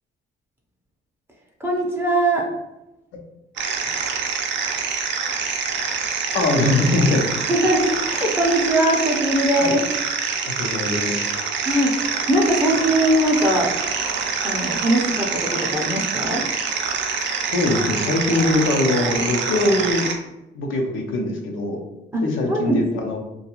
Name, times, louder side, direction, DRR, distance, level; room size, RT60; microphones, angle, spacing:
voice 1, 1.6-2.5 7.5-9.8 11.6-13.7 14.4-16.4 22.1-22.2 22.5-22.8, right 1 dB, 10° right, -1 dB, 0.5 m, -21 dB
sound 1, 3.6-20.2, right 5 dB, 65° right, 0.5 m, -25 dB
voice 2, 6.3-7.2 9.6-9.7 10.5-11.2 17.5-20.1 20.5-21.8 22.2-23.2, left 2 dB, 85° left, 1 dB, 0.6 m, -21 dB
2.3 x 2.3 x 2.9 m, 0.93 s
cardioid pair, 90°, 20 cm